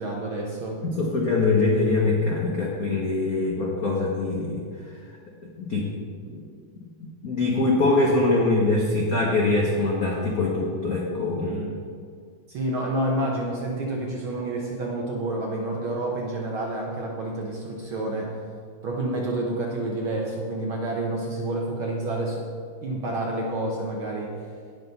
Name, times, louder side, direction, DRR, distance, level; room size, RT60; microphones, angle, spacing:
voice 1, 0.0-0.8 11.5-11.6 12.5-18.4 18.8-22.5 22.8-24.5, right 2 dB, 65° right, -1 dB, 1.3 m, -29 dB
voice 2, 0.8-4.6 5.6-5.9 6.3-6.4 7.0-11.6, left 3 dB, 85° left, -2 dB, 0.8 m, -23 dB
17.5 x 6.0 x 4.0 m, 2.2 s
omnidirectional pair, 3.5 m